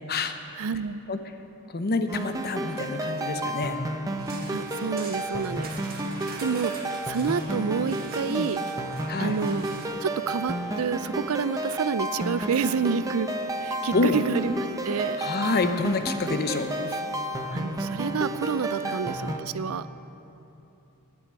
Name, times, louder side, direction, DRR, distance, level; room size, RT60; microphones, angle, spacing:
voice 1, 0.6-1.0 4.5-5.8 6.4-6.7 7.1-8.6 9.2-9.7 10.0-13.3 13.6-14.5 14.8-15.2 17.5-19.9, right 6 dB, 75° right, 15 dB, 0.4 m, -28 dB
voice 2, 1.7-3.8 8.2-8.5 9.1-9.4 13.9-14.2 15.2-17.0 18.8-19.0, left 3 dB, 45° left, 8 dB, 0.8 m, -27 dB
sound 1, 2.1-19.4, right 1 dB, 15° right, 0.8 m, -31 dB
sound 2, 4.2-9.9, right 3 dB, 45° right, 1.7 m, -44 dB
11.0 x 9.7 x 8.7 m, 2.9 s
head